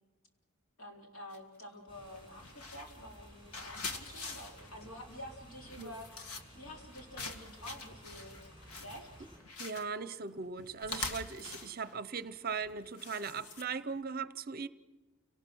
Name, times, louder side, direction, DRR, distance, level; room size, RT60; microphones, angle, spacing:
voice 1, 0.8-6.3 6.5-8.5 8.8-9.1, left 1 dB, 70° left, 4.0 m, -49 dB
sound 1, 1.3-1.6 2.0-14.0, left 3 dB, 85° left, 2.1 m, -45 dB
sound 2, 1.9-9.4, equal, 25° left, 7.9 m, -55 dB
voice 2, 9.6-14.7, right 5 dB, 40° right, 0.6 m, -39 dB
29.5 x 18.5 x 6.2 m
head